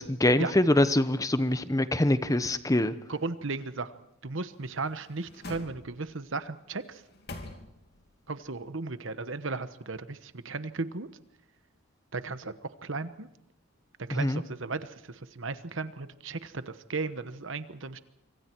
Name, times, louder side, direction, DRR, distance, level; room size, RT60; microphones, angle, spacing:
voice 1, 0.0-2.9 14.1-14.4, left 1 dB, 15° left, 12 dB, 0.9 m, -24 dB
voice 2, 3.1-3.9 4.2-7.0 8.3-11.1 12.1-12.5 12.8-13.3 14.0-18.0, right 3 dB, 60° right, 12 dB, 1.1 m, -35 dB
sound 1, 4.5-6.3 6.8-8.1 8.5-8.6, left 2 dB, 50° left, 3.0 m, -46 dB
25.5 x 25.0 x 4.6 m, 0.80 s
head